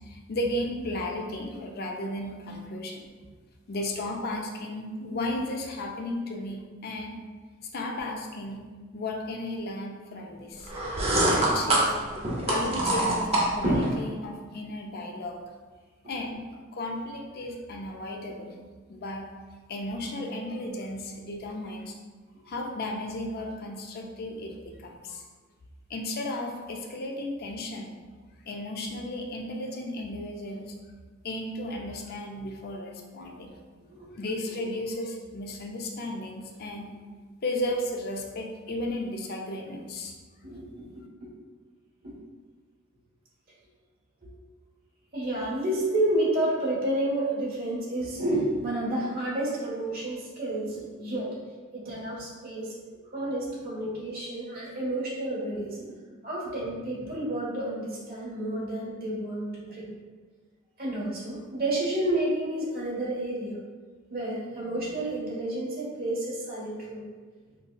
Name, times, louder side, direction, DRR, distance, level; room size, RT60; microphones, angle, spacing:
voice 1, 0.1-3.0 3.7-7.1 7.7-8.6 8.9-10.7 11.1-11.9 12.5-15.4 16.1-16.4 16.7-18.6 18.9-19.3 19.7-21.9 22.5-24.5 24.8-25.2 25.9-27.9 28.5-30.7 31.2-33.5 34.2-36.9 37.4-40.1, left 1 dB, 50° left, 1 dB, 0.4 m, -34 dB
sound 1, 10.7-13.9, right 1 dB, 30° right, 0.6 m, -25 dB
voice 2, 40.4-41.3 42.0-42.1 44.2-44.3 45.1-51.4 51.7-52.7 53.1-55.9 56.2-59.9 60.8-63.5 64.1-67.0, right 1 dB, 50° right, -6 dB, 1.2 m, -30 dB
5.2 x 2.2 x 2.3 m, 1.4 s
head